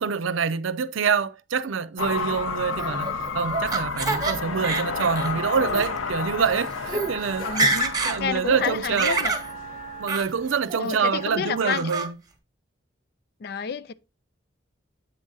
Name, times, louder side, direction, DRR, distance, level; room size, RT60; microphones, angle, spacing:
voice 1, 0.0-7.5 8.0-9.2 10.0-12.1, right 6 dB, 85° right, 0.5 m, -26 dB
sound 1, 2.0-10.6, left 4 dB, 90° left, 0.8 m, -32 dB
voice 2, 2.8-3.2 7.4-9.3 10.8-11.9 13.4-13.9, left 6 dB, 50° left, 0.3 m, -30 dB
Laughter, 2.8-4.3 4.6-5.3 5.7-5.8 6.5-6.6 6.8-7.1 7.4-8.2 8.5-9.5 10.1-10.3 10.7-11.2 11.6-12.1, right 3 dB, 20° right, 1.0 m, -26 dB
Wind instrument woodwind instrument, 4.7-11.9, right 5 dB, 40° right, 0.7 m, -43 dB
8.0 x 3.7 x 4.0 m
head